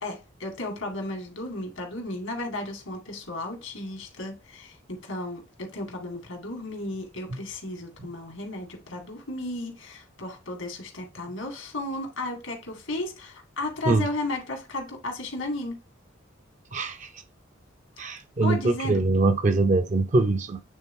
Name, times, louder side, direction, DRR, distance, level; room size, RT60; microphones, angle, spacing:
voice 1, 0.0-15.8 18.4-19.0, left 2 dB, 85° left, 2.0 m, -34 dB
voice 2, 16.7-17.2 18.0-20.6, right 3 dB, 35° right, 0.5 m, -23 dB
8.2 x 3.7 x 3.6 m
head